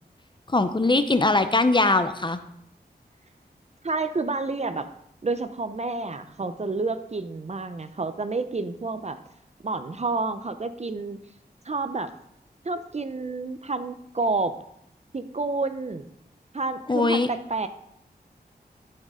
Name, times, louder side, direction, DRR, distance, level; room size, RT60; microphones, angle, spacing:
voice 1, 0.5-2.4 16.9-17.3, left 2 dB, 30° left, 10 dB, 0.7 m, -21 dB
voice 2, 3.8-4.9 5.2-9.2 9.6-11.2 11.6-12.1 12.6-14.5 15.1-16.1 16.5-17.7, right 3 dB, 40° right, 10 dB, 0.7 m, -29 dB
12.5 x 6.5 x 3.8 m, 0.74 s
wide cardioid pair, 75°, 17 cm